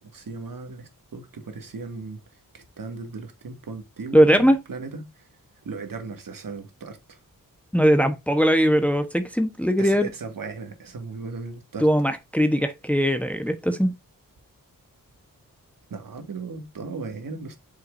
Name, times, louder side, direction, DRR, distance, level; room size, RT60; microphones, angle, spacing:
voice 1, 0.0-2.2 2.5-5.3 5.6-7.2 9.8-11.9 15.9-17.6, right 4 dB, 70° right, 2.0 m, -37 dB
voice 2, 4.1-4.6 7.7-10.1 11.8-13.9, equal, 5° left, 1.1 m, -20 dB
8.2 x 6.3 x 2.7 m
cardioid pair, 75°, 35 cm